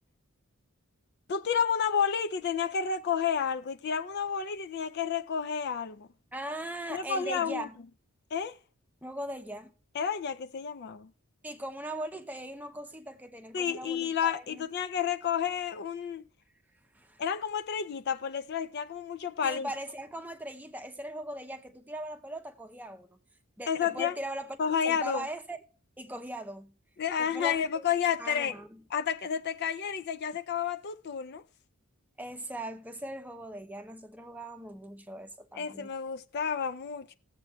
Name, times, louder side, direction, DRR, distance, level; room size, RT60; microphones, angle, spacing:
voice 1, 1.3-6.1 6.9-7.7 8.3-8.6 9.9-11.1 13.5-16.2 17.2-19.7 23.7-24.1 24.6-25.2 27.0-28.6 28.9-31.4 35.6-37.1, left 7 dB, 50° left, 0.4 m, -30 dB
voice 2, 6.3-7.8 9.0-9.7 11.4-14.7 16.9-17.2 19.4-23.2 23.6-24.6 24.8-25.6 26.0-26.8 27.2-27.8 28.2-28.8 32.2-35.9, right 1 dB, 10° right, 0.6 m, -40 dB
18.5 x 7.5 x 2.3 m
head